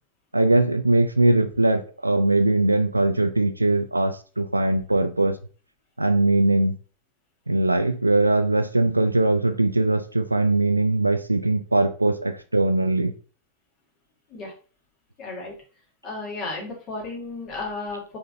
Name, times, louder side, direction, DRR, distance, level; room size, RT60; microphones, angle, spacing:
voice 1, 0.3-5.4 6.0-6.8 7.5-13.1, right 2 dB, 85° right, 0.3 m, -21 dB
voice 2, 15.2-15.5 16.0-18.2, left 3 dB, 35° left, 1.9 m, -33 dB
4.2 x 3.7 x 2.6 m
figure-of-eight pair, 90°, 0 cm